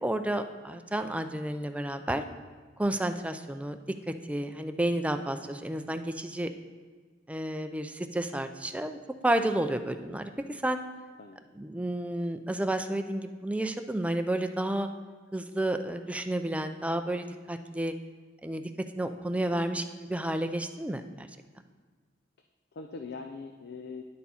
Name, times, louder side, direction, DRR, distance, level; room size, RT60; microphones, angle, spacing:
voice 1, 0.0-2.2 2.8-3.8 4.1-6.5 7.3-9.0 9.2-10.8 11.6-14.9 15.3-17.9 18.4-18.6 18.9-21.3, right 1 dB, 5° right, 7 dB, 0.4 m, -31 dB
voice 2, 22.7-24.0, left 4 dB, 60° left, 5 dB, 0.5 m, -43 dB
10.5 x 6.9 x 4.2 m, 1.5 s
head